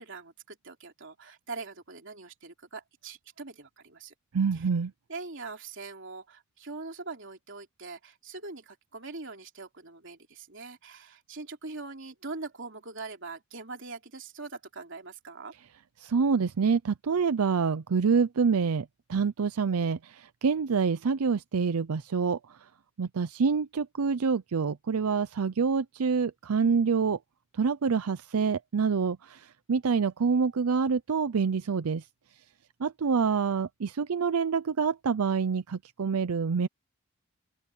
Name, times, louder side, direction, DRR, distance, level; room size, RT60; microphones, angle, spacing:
voice 1, 0.0-4.1 4.5-4.7 5.1-15.5, right 3 dB, 60° right, 3.2 m, -42 dB
voice 2, 4.3-4.9 16.0-22.6 23.0-27.2 27.6-32.0 32.8-36.7, right 5 dB, 90° right, 0.5 m, -27 dB
open air
head